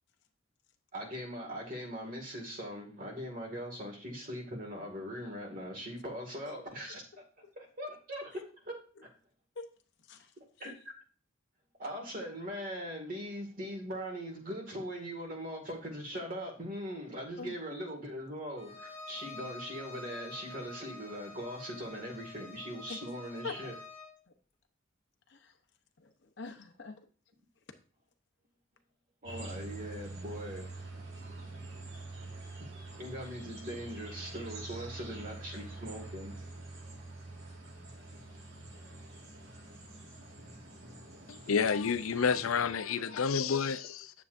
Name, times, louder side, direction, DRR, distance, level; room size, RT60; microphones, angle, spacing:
voice 1, 0.9-7.0 7.6-8.7 10.6-10.7 11.8-23.7 29.2-30.7 32.9-36.3, equal, 40° right, 2.0 m, -40 dB
voice 2, 10.0-10.7 17.4-17.8 22.9-23.0 23.4-23.6 24.3-24.4 25.3-25.6 26.0-27.1, left 4 dB, 55° left, 0.8 m, -45 dB
Bowed string instrument, 18.6-24.2, left 2 dB, 30° left, 1.8 m, -48 dB
sound 1, 29.2-42.7, right 2 dB, 60° right, 1.9 m, -46 dB
voice 3, 41.3-44.1, left 6 dB, 80° left, 0.5 m, -30 dB
9.6 x 7.1 x 2.6 m
head